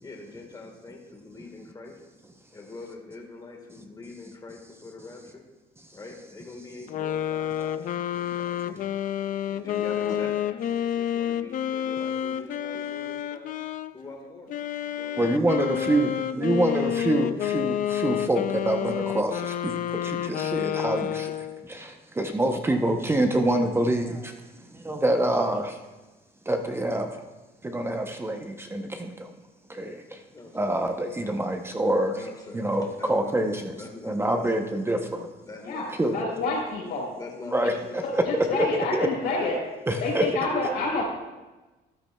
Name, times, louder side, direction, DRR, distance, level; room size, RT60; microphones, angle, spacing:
voice 1, 0.0-2.0 2.5-5.4 5.9-8.8 9.5-13.6 13.9-15.2 15.5-16.5 30.3-30.8 32.1-34.7 35.5-36.3 37.2-39.6 40.0-40.1, left 3 dB, 25° left, 1 dB, 1.5 m, -43 dB
sound 1, 6.9-13.9 14.5-21.7, left 10 dB, 55° left, 0.4 m, -29 dB
voice 2, 9.7-10.2 35.6-37.1 37.6-37.7 38.0-39.6 40.0-41.0, left 3 dB, 75° left, -2 dB, 3.6 m, -29 dB
voice 3, 15.2-24.4 24.7-25.8 26.5-27.2 27.6-29.3 29.7-30.2 30.5-32.2 32.5-33.7 34.0-35.3 36.0-36.3 37.5-37.7 38.1-38.2 38.5-38.7 38.9-39.1 39.9-40.3, right 1 dB, 15° right, 4 dB, 0.7 m, -26 dB
13.5 x 10.0 x 2.2 m, 1.2 s
cardioid pair, 110°, 17 cm